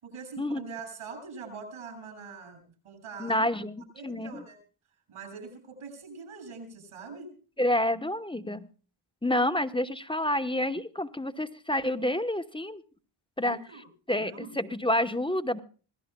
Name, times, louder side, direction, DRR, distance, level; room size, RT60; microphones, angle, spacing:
voice 1, 0.0-3.5 3.9-4.6 5.1-7.3 13.4-13.9 14.2-14.6, right 4 dB, 90° right, 6 dB, 7.1 m, -43 dB
voice 2, 3.2-4.4 7.6-8.7 9.2-12.8 13.4-13.6 14.1-15.6, left 1 dB, 10° left, 9 dB, 0.9 m, -28 dB
26.0 x 17.0 x 2.2 m, 0.39 s
wide cardioid pair, 105°, 50 cm